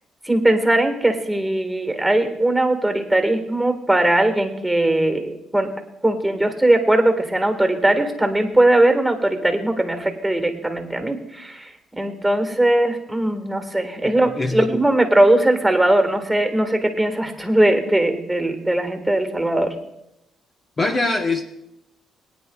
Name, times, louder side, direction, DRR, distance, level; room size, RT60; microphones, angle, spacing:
voice 1, 0.2-5.7 6.0-19.7, right 1 dB, 5° right, 5 dB, 1.8 m, -19 dB
voice 2, 14.0-14.7 20.8-21.4, left 2 dB, 35° left, 4 dB, 1.1 m, -23 dB
22.5 x 9.6 x 2.4 m, 0.84 s
cardioid pair, 90°, 0 cm